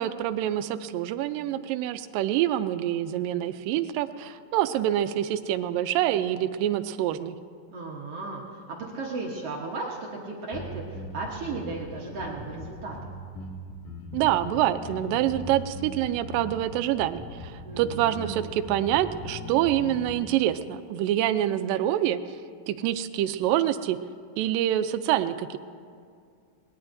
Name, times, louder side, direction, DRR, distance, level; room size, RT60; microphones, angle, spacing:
voice 1, 0.0-7.4 14.1-22.2 22.7-24.0 24.4-25.6, right 12 dB, 85° right, 12 dB, 2.2 m, -26 dB
voice 2, 7.7-13.1 17.6-18.5, right 3 dB, 60° right, -2 dB, 1.7 m, -35 dB
sound 1, 10.5-20.1, left 2 dB, 80° left, 3.5 m, -40 dB
21.5 x 19.5 x 2.6 m, 2.2 s
omnidirectional pair, 3.9 m